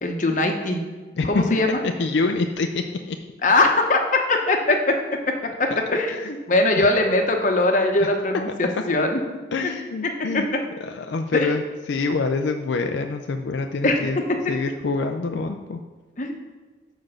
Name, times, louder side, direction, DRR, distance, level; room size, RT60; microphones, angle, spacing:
voice 1, 0.0-0.8 1.2-1.8 3.4-5.0 5.3-5.4 5.6-9.2 9.6-9.7 10.0-10.4 11.3-11.5 13.8-14.0 16.2-16.4, left 2 dB, 45° left, 3 dB, 0.9 m, -21 dB
voice 2, 1.8-3.2 5.7-5.8 6.2-6.3 6.8-6.9 8.0-8.1 9.5-10.5 10.8-11.6 11.9-14.2 14.5-15.8, left 3 dB, 75° left, 5 dB, 0.4 m, -26 dB
6.0 x 5.1 x 6.5 m, 1.4 s
head